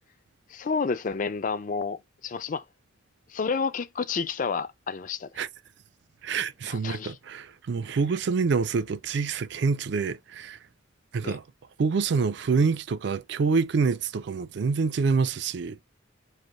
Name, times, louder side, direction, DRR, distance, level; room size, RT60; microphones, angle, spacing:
voice 1, 0.5-2.0 2.2-2.6 3.3-5.4 6.7-7.2 11.2-11.4, left 5 dB, 45° left, 0.4 m, -30 dB
voice 2, 6.2-10.6 11.1-11.4 11.8-15.8, right 5 dB, 65° right, 0.4 m, -26 dB
3.2 x 2.6 x 3.8 m
head